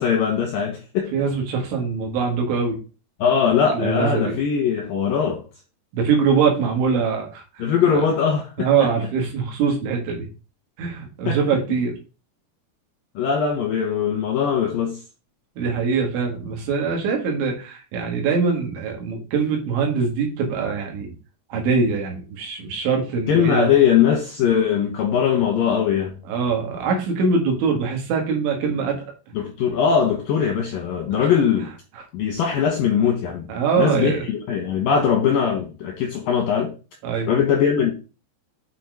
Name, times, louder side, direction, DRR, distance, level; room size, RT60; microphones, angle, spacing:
voice 1, 0.0-1.1 3.2-5.4 7.6-8.7 11.3-11.4 13.2-15.0 23.3-26.2 29.3-31.7 32.1-33.5 33.8-36.7 37.3-37.9, left 7 dB, 75° left, 2.1 m, -20 dB
voice 2, 1.1-2.8 3.7-4.4 5.9-8.0 8.6-10.3 10.8-11.9 15.6-21.1 21.5-23.7 26.3-29.0 31.9-32.0 33.5-34.2 37.0-37.3, right 5 dB, 75° right, 4.3 m, -23 dB
8.4 x 4.3 x 4.8 m
omnidirectional pair, 5.4 m